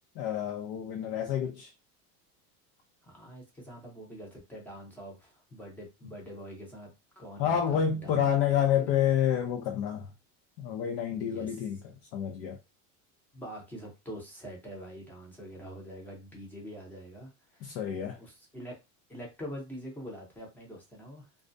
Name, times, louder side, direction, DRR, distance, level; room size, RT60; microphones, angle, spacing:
voice 1, 0.2-1.7 7.4-10.1 10.6-11.8 12.1-12.6 17.6-18.2, left 9 dB, 60° left, 0.6 m, -28 dB
voice 2, 3.0-8.3 8.8-8.9 11.2-11.6 13.3-17.8 18.2-18.7 19.1-21.3, equal, 5° left, 0.7 m, -45 dB
2.4 x 2.0 x 2.6 m
supercardioid pair, 140°, 46 cm